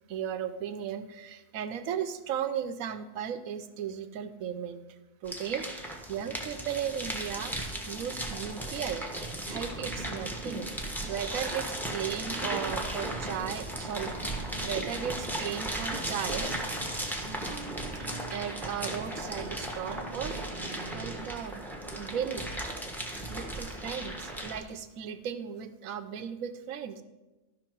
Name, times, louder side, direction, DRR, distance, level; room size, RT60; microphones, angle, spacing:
voice 1, 0.1-4.8 5.2-9.1 9.4-16.5 17.9-20.4 20.9-21.6 21.9-22.4 22.9-23.0 23.3-27.0, right 8 dB, 70° right, 11 dB, 1.1 m, -36 dB
sound 1, 5.2-24.6, right 1 dB, ahead, 1.0 m, -36 dB
sound 2, 6.1-21.3, right 3 dB, 40° right, 0.8 m, -48 dB
13.5 x 5.7 x 4.6 m, 1.1 s
omnidirectional pair, 1.5 m